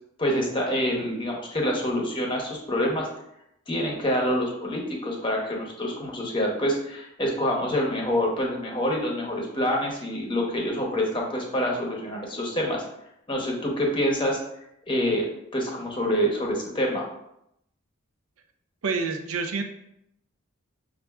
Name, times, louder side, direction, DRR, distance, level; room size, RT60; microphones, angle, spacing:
voice 1, 0.2-3.1 3.7-12.8 13.3-14.4 14.9-15.3 15.5-17.1, equal, 25° left, 0 dB, 0.7 m, -26 dB
voice 2, 18.8-19.6, right 4 dB, 90° right, 5 dB, 0.5 m, -27 dB
6.4 x 2.5 x 2.3 m, 0.79 s
head